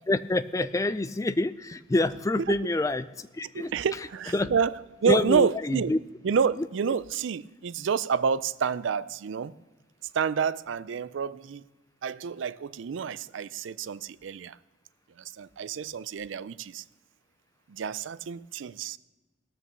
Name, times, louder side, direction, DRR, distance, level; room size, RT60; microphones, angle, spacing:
voice 1, 0.1-3.7 4.3-4.5 5.1-6.0, left 2 dB, 15° left, 13 dB, 0.3 m, -27 dB
voice 2, 3.5-4.7 5.0-5.9 6.2-9.5 10.1-11.6 12.0-14.6 15.2-16.8 17.7-19.0, right 6 dB, 70° right, 18 dB, 0.4 m, -28 dB
17.5 x 6.1 x 6.8 m, 1.2 s
head